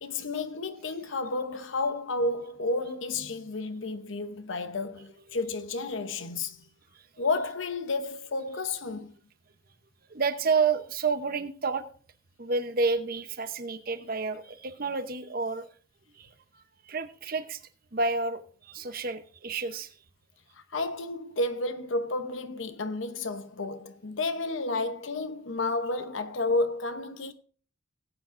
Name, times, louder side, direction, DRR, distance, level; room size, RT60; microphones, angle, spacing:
voice 1, 0.0-6.6 7.2-9.1 20.7-27.3, left 2 dB, 70° left, 0.9 m, -31 dB
voice 2, 10.1-11.8 12.4-15.7 16.1-17.6 17.9-20.0, right 4 dB, 45° right, 0.9 m, -30 dB
19.0 x 8.4 x 2.6 m
head